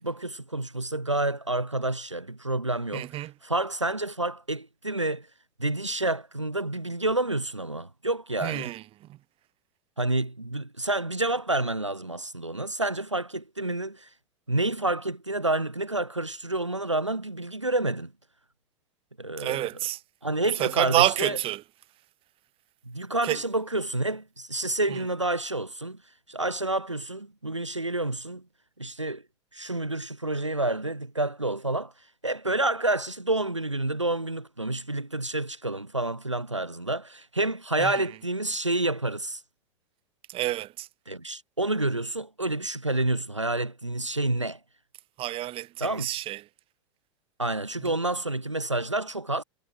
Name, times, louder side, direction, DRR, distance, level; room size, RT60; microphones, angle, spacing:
voice 1, 0.0-5.3 5.6-8.7 10.0-14.1 14.5-18.1 19.2-19.7 20.2-21.4 22.9-26.0 26.3-28.4 28.8-29.2 29.5-31.9 32.2-39.4 41.1-44.6 45.8-46.1 47.4-49.4, right 2 dB, 85° right, 3.9 m, -29 dB
voice 2, 2.9-3.3 8.4-8.8 19.4-20.0 20.5-21.6 23.2-23.4 24.9-25.0 37.8-38.0 40.3-40.9 45.2-46.4 47.8-47.9, right 15 dB, 35° right, 7.3 m, -28 dB
figure-of-eight pair, 85°, 15 cm